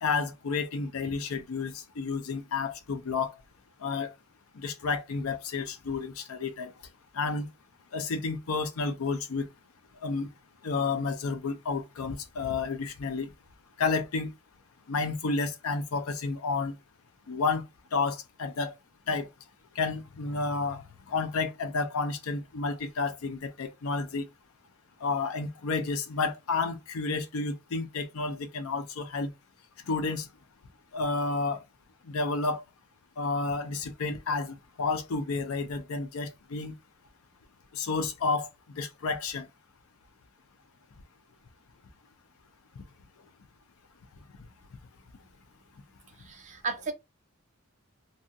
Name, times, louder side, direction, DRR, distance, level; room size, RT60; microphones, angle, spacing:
voice 1, 0.0-3.4 3.8-4.1 4.5-6.7 7.1-7.5 7.9-9.5 10.0-10.3 10.6-13.3 13.8-14.3 14.9-16.7 17.3-17.7 17.9-18.7 19.1-19.3 19.8-24.3 25.0-29.3 29.8-30.3 30.9-31.6 32.0-32.6 33.2-36.7 37.7-38.5 38.8-39.5, left 4 dB, 90° left, 0.5 m, -31 dB
voice 2, 46.2-46.9, right 4 dB, 35° right, 0.5 m, -34 dB
2.7 x 2.3 x 2.6 m
head